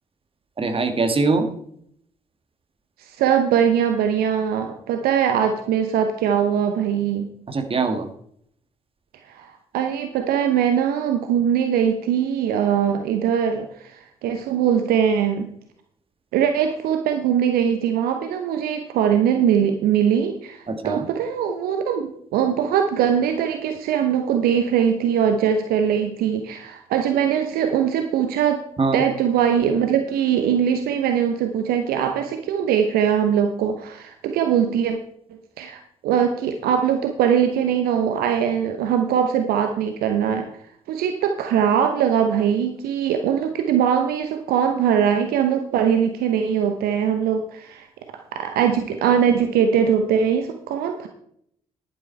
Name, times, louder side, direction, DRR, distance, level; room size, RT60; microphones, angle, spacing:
voice 1, 0.6-1.5 7.5-8.1 20.7-21.1 28.8-29.0, right 3 dB, 30° right, 7 dB, 1.6 m, -22 dB
voice 2, 3.0-7.3 9.3-15.5 16.3-28.6 28.9-35.0 35.6-40.4 40.9-47.9 48.3-51.1, right 8 dB, 60° right, 6 dB, 0.9 m, -21 dB
11.0 x 8.7 x 4.5 m, 0.68 s
figure-of-eight pair, 40°, 18 cm